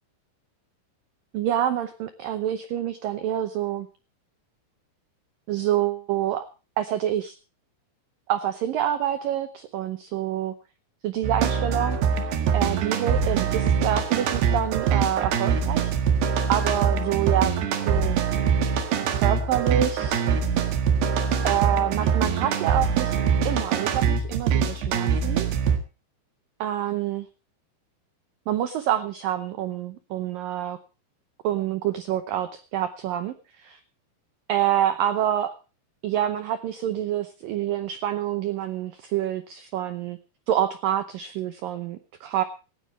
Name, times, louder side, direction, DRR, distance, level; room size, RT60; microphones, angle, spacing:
voice 1, 1.3-3.9 5.5-6.5 6.8-7.4 8.3-10.5 11.0-12.3 12.5-15.9 16.5-17.5 17.8-18.2 19.2-20.3 21.4-23.1 23.4-25.5 26.6-27.3 28.5-30.8 31.4-33.8 34.5-35.5 36.0-40.2 40.5-42.4, right 11 dB, 85° right, 11 dB, 2.0 m, -27 dB
sound 1, 11.2-25.8, right 6 dB, 70° right, 3.7 m, -23 dB
17.5 x 16.0 x 3.2 m, 0.32 s
omnidirectional pair, 5.3 m